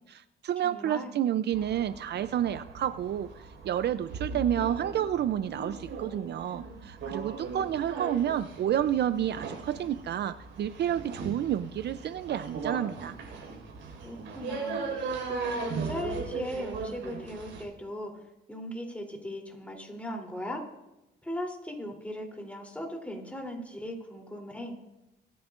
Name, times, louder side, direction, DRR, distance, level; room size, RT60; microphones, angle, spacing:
voice 1, 0.1-3.3 3.6-13.2, right 10 dB, 60° right, 14 dB, 0.5 m, -30 dB
voice 2, 0.6-1.2 14.0-20.6 21.2-24.8, equal, 5° left, 1 dB, 3.1 m, -38 dB
sound 1, 1.5-17.6, right 4 dB, 80° right, 4.8 m, -38 dB
25.0 x 10.0 x 2.5 m, 0.93 s
cardioid pair, 90°, 20 cm